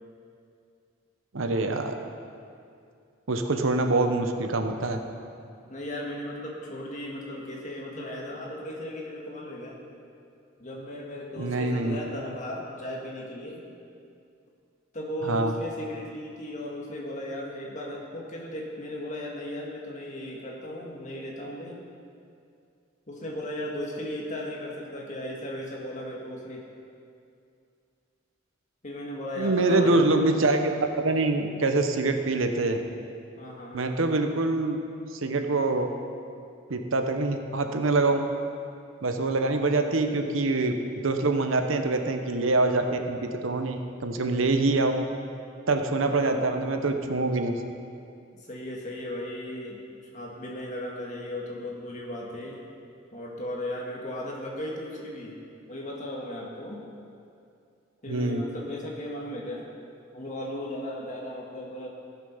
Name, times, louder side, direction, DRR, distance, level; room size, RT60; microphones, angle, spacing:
voice 1, 1.3-1.9 3.3-5.0 11.4-12.0 15.3-15.5 29.4-32.8 33.7-34.8 35.1-35.9 36.7-38.2 39.0-44.9 45.7-47.6 58.1-58.4, right 2 dB, 80° right, 5 dB, 0.9 m, -25 dB
voice 2, 5.7-9.8 10.6-13.6 14.9-21.8 23.1-26.6 28.8-30.0 33.4-33.8 46.0-46.4 48.5-49.8 50.1-52.6 53.1-55.4 55.7-56.9 58.0-59.7 60.1-61.9, left 1 dB, 40° left, -2 dB, 2.0 m, -36 dB
15.5 x 7.3 x 5.6 m, 2.4 s
head